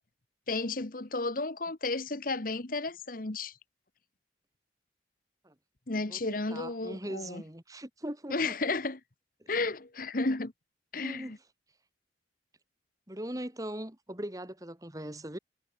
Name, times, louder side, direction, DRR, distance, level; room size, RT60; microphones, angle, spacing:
voice 1, 0.5-3.5 5.9-7.4 8.3-9.0 9.5-10.5 10.9-11.4, left 3 dB, 45° left, 1.2 m, -32 dB
voice 2, 6.5-8.6 11.0-11.3 13.1-15.4, right 1 dB, 20° right, 2.1 m, -40 dB
head